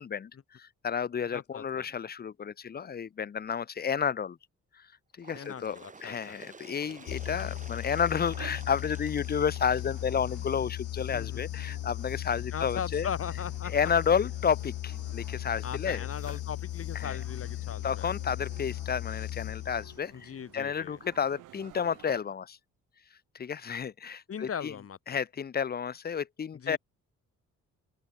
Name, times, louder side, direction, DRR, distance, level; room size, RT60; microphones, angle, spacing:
voice 1, 0.0-0.3 0.6-4.4 5.2-13.1 13.6-16.0 16.9-17.2 17.8-22.6 23.4-24.7 25.1-26.8, left 7 dB, 30° left, 0.7 m, -31 dB
voice 2, 1.3-1.9 5.3-6.4 11.1-11.4 12.5-13.7 15.6-18.1 20.1-21.0 24.3-25.2 26.5-26.8, left 7 dB, 50° left, 3.6 m, -39 dB
Bird, 5.2-10.6 11.5-11.6 12.0-12.1 13.0-13.1 14.0-14.1 15.0-15.1, right 4 dB, 25° right, 2.1 m, -51 dB
sound 1, 6.7-22.2, right 15 dB, 90° right, 5.3 m, -54 dB
sound 2, 7.1-20.2, left 15 dB, 75° left, 1.0 m, -37 dB
open air
cardioid pair, 90°, 30 cm